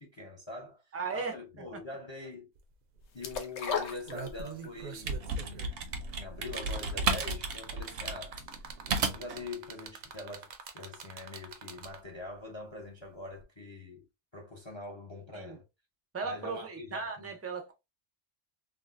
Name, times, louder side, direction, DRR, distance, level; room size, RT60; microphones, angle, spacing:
voice 1, 0.0-2.5 3.1-8.8 9.1-14.1 14.3-15.6 16.2-17.4, left 2 dB, 30° left, 0.6 m, -44 dB
voice 2, 0.9-1.8 15.3-15.6 16.1-17.7, right 4 dB, 20° right, 0.3 m, -37 dB
sound 1, 2.6-2.7 3.0-3.2 3.8-12.2 13.4-13.5, right 6 dB, 55° right, 0.6 m, -45 dB
sound 2, 3.2-4.8 5.1-5.2, left 6 dB, 70° left, 0.9 m, -35 dB
sound 3, 4.8-9.4, right 4 dB, 75° right, 1.0 m, -33 dB
3.8 x 2.1 x 2.4 m
omnidirectional pair, 1.2 m